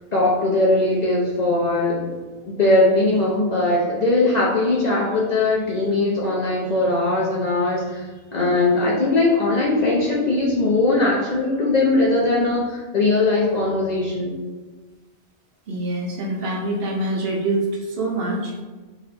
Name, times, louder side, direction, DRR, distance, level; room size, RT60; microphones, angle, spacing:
voice 1, 0.1-2.1 2.5-8.0 8.3-14.4, left 2 dB, 55° left, -4 dB, 0.5 m, -20 dB
voice 2, 15.7-18.5, right 2 dB, 65° right, -2 dB, 0.8 m, -25 dB
2.7 x 2.5 x 3.2 m, 1.3 s
omnidirectional pair, 1.1 m